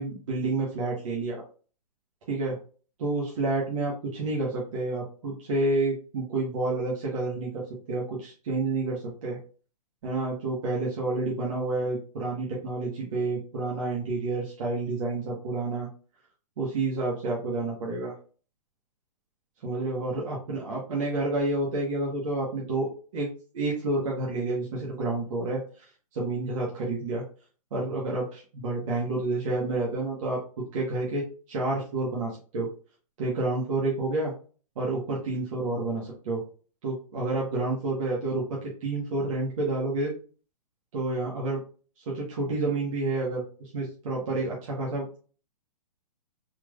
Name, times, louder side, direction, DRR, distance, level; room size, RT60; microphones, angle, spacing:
voice 1, 0.0-1.4 2.3-2.6 3.0-9.4 10.0-15.9 16.6-18.2 19.6-23.3 23.5-25.8 26.1-27.2 27.7-32.7 33.2-34.3 34.7-36.4 36.8-40.1 40.9-41.6 42.0-45.2, right 2 dB, 55° right, -4 dB, 1.5 m, -29 dB
4.4 x 3.4 x 2.5 m, 0.39 s
hypercardioid pair, 160°, 20 cm